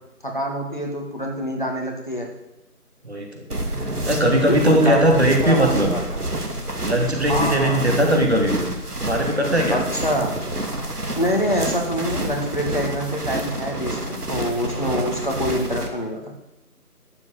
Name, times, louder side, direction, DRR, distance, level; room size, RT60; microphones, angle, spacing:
voice 1, 0.2-2.3 4.5-6.2 7.3-8.2 9.7-10.4 11.2-16.3, equal, 30° left, 1 dB, 2.0 m, -25 dB
voice 2, 3.0-3.4 4.1-5.9 6.8-8.6 9.0-9.8 14.9-15.1, right 1 dB, 45° right, 1 dB, 3.0 m, -19 dB
sound 1, 3.5-15.9, right 1 dB, 75° right, 2.7 m, -28 dB
12.5 x 8.4 x 8.5 m, 0.90 s
figure-of-eight pair, 170°, 47 cm